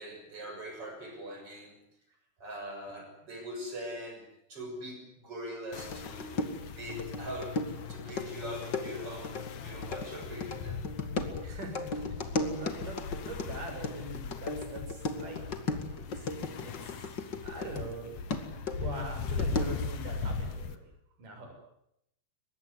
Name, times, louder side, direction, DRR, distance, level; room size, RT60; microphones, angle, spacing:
voice 1, 0.0-1.8 2.4-10.8, equal, 35° right, 4 dB, 7.4 m, -42 dB
sound 1, 5.7-20.8, left 5 dB, 55° left, 2.6 m, -39 dB
sound 2, 5.8-17.9 18.3-19.9, left 3 dB, 35° left, 2.1 m, -36 dB
voice 2, 11.4-15.4 15.9-18.3 18.8-20.8 21.2-21.5, right 2 dB, 55° right, 4 dB, 7.9 m, -43 dB
23.5 x 20.5 x 9.6 m, 0.78 s
omnidirectional pair, 4.6 m